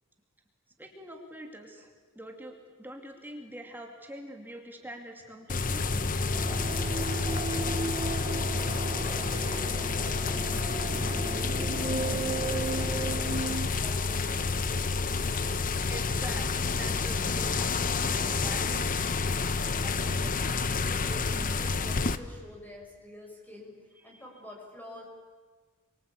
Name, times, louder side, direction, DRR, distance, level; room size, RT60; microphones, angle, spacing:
voice 1, 0.8-1.9 2.1-5.9 15.9-18.8, right 1 dB, 10° right, 2 dB, 2.5 m, -44 dB
sound 1, 5.5-22.2, left 4 dB, 40° left, 1.0 m, -29 dB
sound 2, 6.3-13.7, right 3 dB, 25° right, 1.0 m, -35 dB
voice 2, 6.4-7.1 7.5-14.9 19.8-25.0, left 1 dB, 10° left, 0 dB, 6.7 m, -48 dB
27.5 x 24.5 x 8.6 m, 1.5 s
head